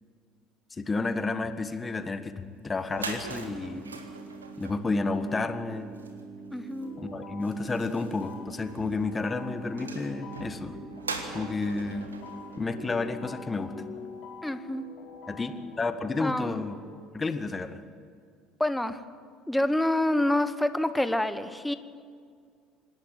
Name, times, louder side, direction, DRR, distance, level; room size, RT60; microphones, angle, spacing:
voice 1, 0.7-3.9 4.6-5.9 7.0-10.8 11.3-12.1 12.6-13.8 15.3-16.8 17.1-17.8, left 3 dB, 25° left, 10 dB, 1.5 m, -31 dB
sound 1, 2.5-2.6 2.8-13.6, right 4 dB, 85° right, 1.5 m, -43 dB
sound 2, 3.3-13.3, right 4 dB, 45° right, 7.2 m, -45 dB
voice 2, 6.5-6.9 14.4-14.8 16.2-16.6 18.6-19.0 19.5-21.7, left 1 dB, 5° left, 12 dB, 1.3 m, -27 dB
sound 3, 6.8-16.9, left 5 dB, 55° left, 4.2 m, -46 dB
26.5 x 12.0 x 9.1 m, 2.2 s
figure-of-eight pair, 60°, 0 cm